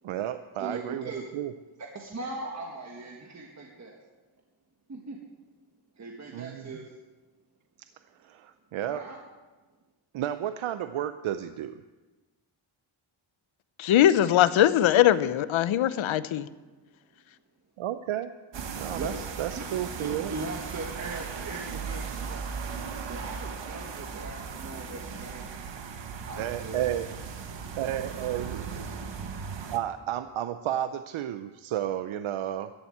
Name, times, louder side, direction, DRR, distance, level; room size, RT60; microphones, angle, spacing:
voice 1, 0.0-1.5 6.3-6.7 8.2-9.0 10.1-11.8 17.8-18.3 18.7-20.3 26.4-27.1 27.8-28.6 29.7-32.7, right 11 dB, 80° right, 10 dB, 0.7 m, -32 dB
voice 2, 0.6-1.2 1.9-4.0 4.9-5.2 6.0-6.9 8.9-9.2 18.6-18.7 19.0-19.2 19.5-19.6 20.0-22.4 23.1-25.5 26.2-26.8, right 3 dB, 35° right, 0 dB, 1.6 m, -39 dB
voice 3, 13.8-16.5, left 12 dB, 75° left, 15 dB, 0.7 m, -21 dB
sound 1, 18.5-29.8, right 6 dB, 65° right, 1.4 m, -37 dB
14.0 x 7.2 x 8.6 m, 1.2 s
cardioid pair, 110°, 48 cm